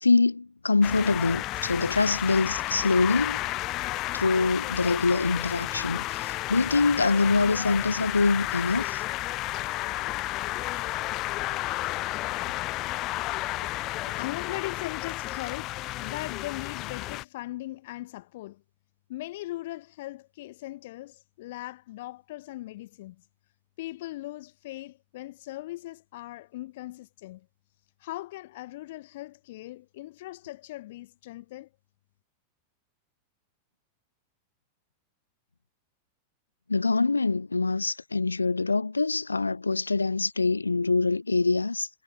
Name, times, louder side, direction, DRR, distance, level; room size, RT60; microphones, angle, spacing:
voice 1, 0.0-3.4 4.1-9.0 36.7-41.9, left 3 dB, 80° left, 0.9 m, -24 dB
sound 1, 0.8-17.2, left 18 dB, 40° left, 0.6 m, -32 dB
voice 2, 14.2-18.6 19.1-23.2 23.8-27.5 28.0-31.7, left 17 dB, 55° left, 1.7 m, -39 dB
figure-of-eight pair, 90°, 0 cm